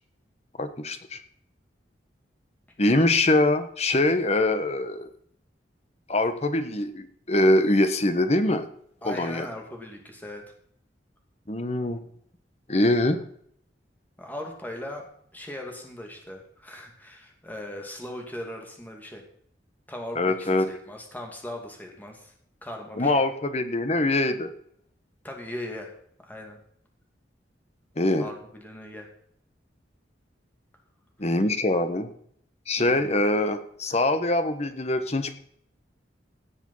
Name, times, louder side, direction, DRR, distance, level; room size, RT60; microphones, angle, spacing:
voice 1, 0.6-1.2 2.8-5.1 6.1-8.6 9.0-9.5 11.5-12.0 12.7-13.2 20.1-20.7 23.0-24.5 28.0-28.3 31.2-32.1 32.7-35.4, left 1 dB, 35° left, 9 dB, 1.2 m, -23 dB
voice 2, 9.0-10.4 14.2-15.0 15.3-19.2 19.9-22.3 22.6-23.2 25.2-25.9 26.2-26.6 28.2-29.1 32.8-33.2, left 1 dB, 10° left, 2 dB, 2.5 m, -39 dB
17.0 x 7.3 x 5.6 m, 0.64 s
head